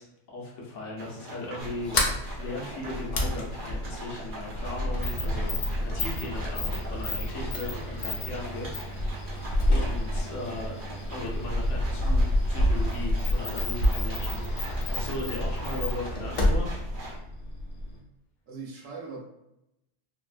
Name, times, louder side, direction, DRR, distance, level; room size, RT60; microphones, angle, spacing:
voice 1, 0.0-9.3 9.7-10.7 11.1-16.8, left 2 dB, 75° left, -3 dB, 1.1 m, -38 dB
sound 1, 1.0-17.2, right 1 dB, 45° right, 0.9 m, -42 dB
Sliding door, 1.6-18.0, left 1 dB, 55° left, 0.5 m, -29 dB
voice 2, 15.1-15.4 18.5-19.2, right 4 dB, 80° right, -3 dB, 1.2 m, -41 dB
3.4 x 2.1 x 2.4 m, 0.83 s
omnidirectional pair, 1.3 m